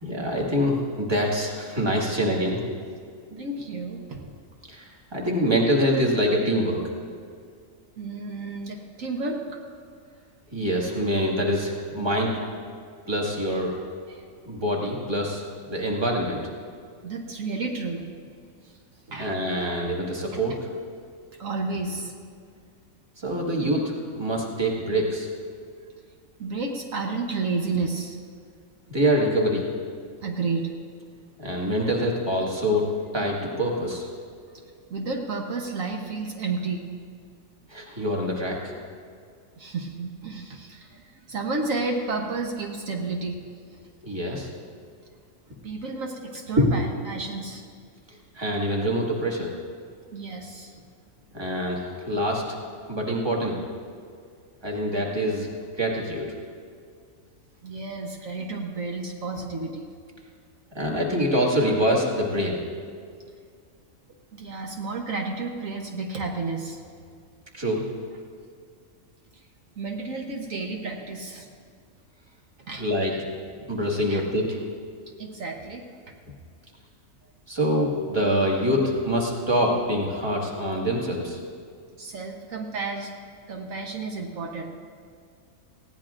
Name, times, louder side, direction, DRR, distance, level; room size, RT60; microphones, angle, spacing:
voice 1, 0.0-2.6 3.3-3.4 4.7-6.8 10.5-12.4 13.1-13.8 14.4-15.4 15.7-16.4 19.2-20.7 23.2-25.3 28.9-29.7 31.4-32.8 33.1-34.1 37.7-38.7 44.0-44.5 48.3-49.5 51.3-52.6 52.9-53.6 54.6-55.5 55.8-56.3 60.7-62.6 67.5-67.8 72.8-73.1 73.7-74.6 77.5-81.4, equal, 20° right, -2 dB, 1.8 m, -25 dB
voice 2, 3.4-4.2 8.0-9.6 14.1-14.3 17.0-18.0 18.6-18.8 19.1-19.5 21.3-22.1 26.4-28.2 30.2-30.7 34.5-36.8 39.6-43.4 43.7-43.8 45.6-47.7 50.1-50.8 57.6-59.9 64.3-66.8 69.3-69.4 69.8-71.5 72.6-72.8 73.1-73.2 74.1-74.3 75.2-75.9 82.0-83.1 83.5-84.7, right 3 dB, 70° right, 1 dB, 1.4 m, -31 dB
19.5 x 16.0 x 2.5 m, 2.2 s
omnidirectional pair, 1.4 m